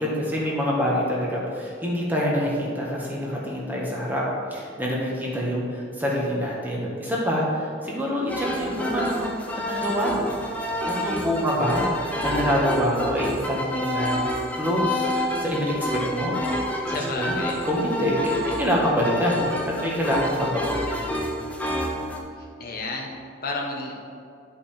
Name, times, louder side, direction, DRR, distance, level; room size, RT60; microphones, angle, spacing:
voice 1, 0.0-10.4 10.9-16.4 17.3-17.4 17.7-21.1, equal, 10° right, -4 dB, 1.4 m, -26 dB
sound 1, 8.3-22.2, equal, 5° left, 0.7 m, -28 dB
voice 2, 16.9-17.6 22.4-23.9, left 2 dB, 45° left, -1 dB, 1.1 m, -32 dB
10.5 x 5.5 x 4.4 m, 2.5 s
head